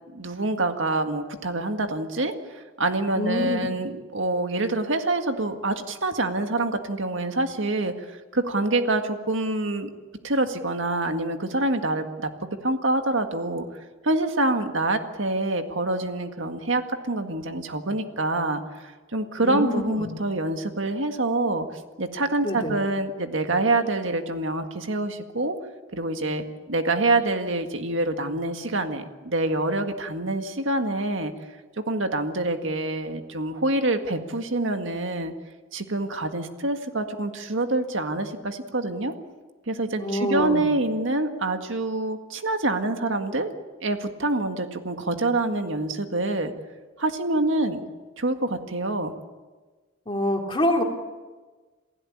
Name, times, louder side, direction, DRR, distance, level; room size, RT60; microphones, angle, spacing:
voice 1, 0.1-9.9 10.2-13.7 14.0-18.6 19.1-21.7 22.0-25.6 25.9-31.3 31.9-35.3 35.7-39.1 39.7-43.5 43.8-46.5 47.0-47.8 48.2-49.1, right 2 dB, 70° right, 6 dB, 1.8 m, -26 dB
voice 2, 3.1-3.7 19.4-20.1 22.4-22.8 40.0-40.7 50.1-50.8, left 1 dB, 25° left, 2 dB, 2.9 m, -26 dB
28.0 x 16.0 x 8.7 m, 1.3 s
head